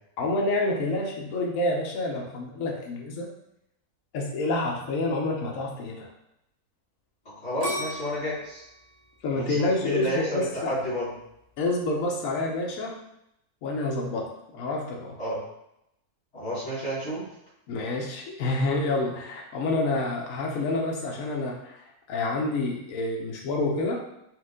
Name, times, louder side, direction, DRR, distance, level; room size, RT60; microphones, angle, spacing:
voice 1, 0.2-3.3 4.1-6.1 9.2-10.8 11.6-13.0 13.6-15.1 17.7-21.8 22.1-24.0, left 2 dB, 65° left, -1 dB, 1.1 m, -28 dB
voice 2, 7.4-8.6 9.3-11.1 15.2-15.4 16.3-17.3, equal, 45° left, -8 dB, 1.7 m, -31 dB
sound 1, 7.6-10.5 11.0-11.5, equal, 30° right, 0.9 m, -36 dB
4.5 x 2.5 x 3.6 m, 0.80 s
omnidirectional pair, 1.6 m